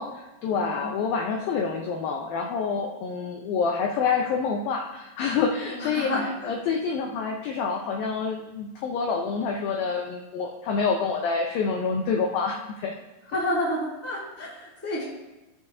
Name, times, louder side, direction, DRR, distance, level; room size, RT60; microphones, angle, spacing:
voice 1, 0.0-13.0, left 5 dB, 75° left, 1 dB, 2.2 m, -27 dB
voice 2, 5.7-6.2 13.3-14.5 14.8-15.0, left 1 dB, 5° left, -6 dB, 1.8 m, -28 dB
19.0 x 6.8 x 2.7 m, 1.0 s
omnidirectional pair, 4.9 m